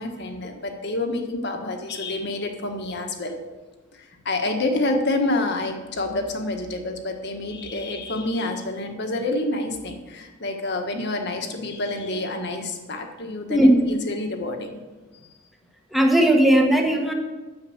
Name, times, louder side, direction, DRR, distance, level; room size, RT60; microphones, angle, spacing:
voice 1, 0.0-3.4 3.9-14.7, left 2 dB, 50° left, 4 dB, 1.6 m, -28 dB
voice 2, 13.5-13.8 15.9-17.1, right 1 dB, ahead, 1 dB, 1.4 m, -17 dB
10.0 x 7.2 x 7.9 m, 1.3 s
head